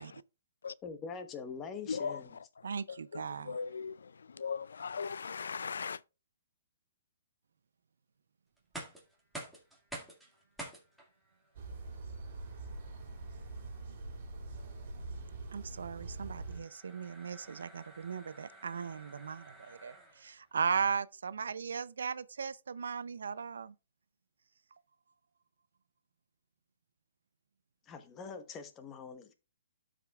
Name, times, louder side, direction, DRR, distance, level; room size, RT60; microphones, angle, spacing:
voice 1, 0.8-2.3 27.9-29.3, left 5 dB, 20° left, 1.0 m, -44 dB
voice 2, 1.9-2.2 3.1-3.2 3.5-4.0 4.4-6.0, left 5 dB, 90° left, 0.3 m, -37 dB
voice 3, 2.6-3.6 15.5-23.7, right 6 dB, 85° right, 0.5 m, -37 dB
sound 1, 8.6-20.5, right 1 dB, ahead, 2.0 m, -51 dB
sound 2, 11.5-16.6, right 3 dB, 45° right, 3.2 m, -44 dB
13.0 x 5.0 x 2.4 m
hypercardioid pair, 155°, 0 cm